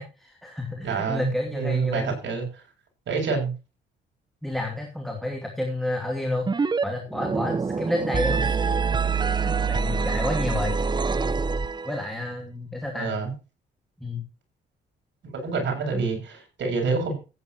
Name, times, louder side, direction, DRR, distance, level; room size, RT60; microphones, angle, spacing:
voice 1, 0.0-2.2 4.4-8.7 9.2-10.8 11.8-13.1 14.0-14.2 15.9-16.0, left 1 dB, ahead, 2 dB, 2.6 m, -30 dB
voice 2, 0.8-2.6 3.1-3.5 12.9-13.3 15.3-17.2, right 4 dB, 65° right, 1 dB, 7.8 m, -27 dB
sound 1, 6.5-6.8 7.1-12.1, right 5 dB, 20° right, 0.6 m, -25 dB
15.0 x 10.5 x 3.1 m, 0.31 s
cardioid pair, 90°, 20 cm